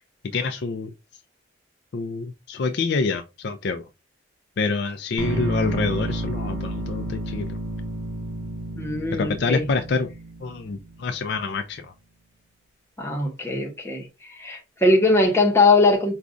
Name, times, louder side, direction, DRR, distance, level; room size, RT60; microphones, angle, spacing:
voice 1, 0.3-0.9 1.9-3.8 4.6-7.5 9.2-10.1 10.4-11.9, left 4 dB, 55° left, 0.4 m, -26 dB
sound 1, 5.2-11.2, right 1 dB, 85° right, 0.8 m, -31 dB
voice 2, 8.7-9.6 13.0-14.1 14.4-16.1, left 2 dB, 15° left, 0.9 m, -20 dB
5.0 x 2.3 x 2.5 m
head